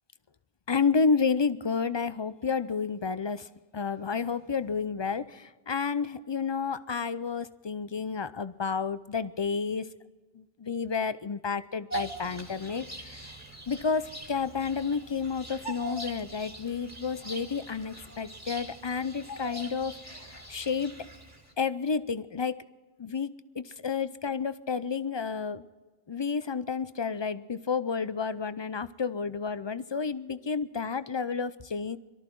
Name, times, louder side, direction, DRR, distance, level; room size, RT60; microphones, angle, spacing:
voice 1, 0.7-3.5 3.7-9.9 10.4-13.2 13.7-20.9 21.6-22.6 23.0-23.3 23.6-25.7 26.1-32.0, left 5 dB, 35° left, 14 dB, 0.4 m, -30 dB
Bird vocalization bird call bird song, 11.9-21.5, right 1 dB, 15° right, 2.1 m, -42 dB
23.0 x 13.5 x 4.6 m, 1.3 s
omnidirectional pair, 1.0 m